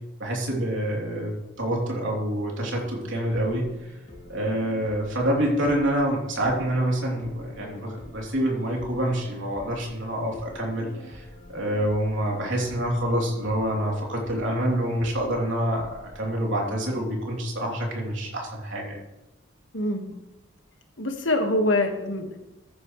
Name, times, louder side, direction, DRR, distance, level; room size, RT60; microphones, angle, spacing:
voice 1, 0.2-3.9 4.3-19.0, right 1 dB, 75° right, -2 dB, 3.3 m, -27 dB
sound 1, 3.2-16.4, left 1 dB, 35° left, 2.9 m, -47 dB
voice 2, 19.7-20.0 21.0-22.5, left 1 dB, 75° left, 4 dB, 1.6 m, -25 dB
14.5 x 10.0 x 3.2 m, 0.98 s
head